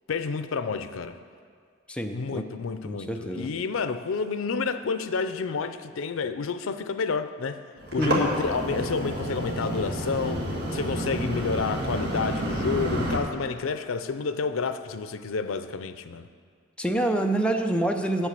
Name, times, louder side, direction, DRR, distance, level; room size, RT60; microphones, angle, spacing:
voice 1, 0.1-1.2 2.1-7.6 7.9-10.5 10.7-16.3, left 5 dB, 85° left, 0.5 m, -30 dB
voice 2, 1.9-2.5 2.8-3.5 8.0-8.3 16.8-18.3, right 1 dB, 5° left, 0.5 m, -26 dB
sound 1, 7.8-13.2, equal, 55° right, 1.8 m, -29 dB
7.9 x 7.6 x 6.7 m
head